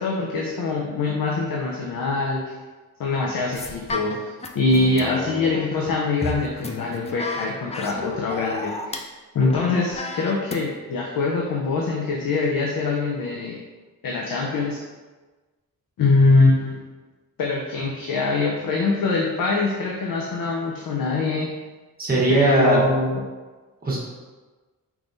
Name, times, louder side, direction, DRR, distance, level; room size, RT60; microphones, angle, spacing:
voice 1, 0.0-2.6 3.0-9.0 9.3-13.6 14.0-14.8 16.0-16.8 17.4-21.5 22.3-23.2, left 3 dB, 70° left, -2 dB, 0.6 m, -23 dB
sound 1, 3.5-9.0 9.4-10.6, left 2 dB, 20° left, 0.3 m, -32 dB
voice 2, 22.0-22.8 23.8-24.0, right 1 dB, 25° right, -5 dB, 1.2 m, -19 dB
4.4 x 3.7 x 2.6 m, 1.3 s
wide cardioid pair, 110°, 35 cm